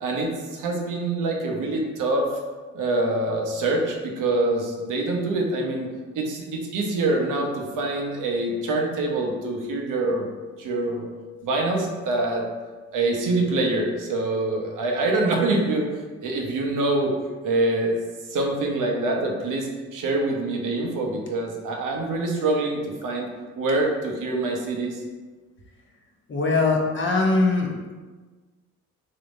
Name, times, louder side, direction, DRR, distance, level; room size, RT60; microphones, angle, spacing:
voice 1, 0.0-2.3 2.7-5.9 6.1-10.3 10.6-11.1 11.4-12.4 12.9-15.9 16.2-17.1 17.4-18.0 18.3-23.3 23.6-25.0, right 2 dB, 65° right, 1 dB, 0.7 m, -25 dB
voice 2, 26.3-27.9, left 3 dB, 35° left, 0 dB, 0.8 m, -22 dB
3.5 x 2.7 x 2.6 m, 1.3 s
hypercardioid pair, 50°, 35 cm